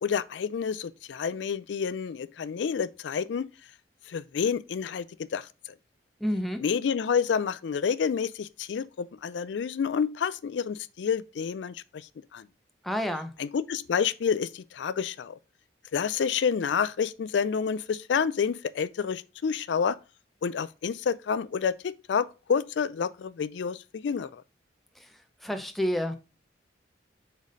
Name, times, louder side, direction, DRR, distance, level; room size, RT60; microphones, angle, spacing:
voice 1, 0.0-3.5 4.1-5.5 6.6-12.5 13.4-15.4 15.9-20.0 20.4-24.4, left 6 dB, 75° left, 0.4 m, -29 dB
voice 2, 6.2-6.6 12.8-13.3 25.4-26.2, equal, ahead, 0.6 m, -29 dB
5.0 x 4.0 x 5.2 m
head